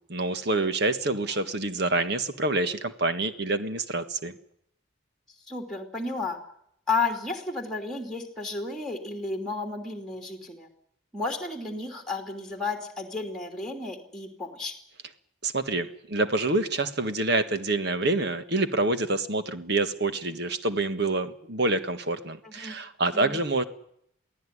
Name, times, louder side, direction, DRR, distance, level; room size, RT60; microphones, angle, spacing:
voice 1, 0.1-4.3 15.4-23.6, right 2 dB, 50° right, 10 dB, 1.6 m, -27 dB
voice 2, 5.5-6.4 6.9-10.7 11.1-14.7 22.4-22.8 23.1-23.4, left 3 dB, ahead, 4 dB, 3.0 m, -32 dB
23.5 x 15.5 x 9.9 m, 0.73 s
head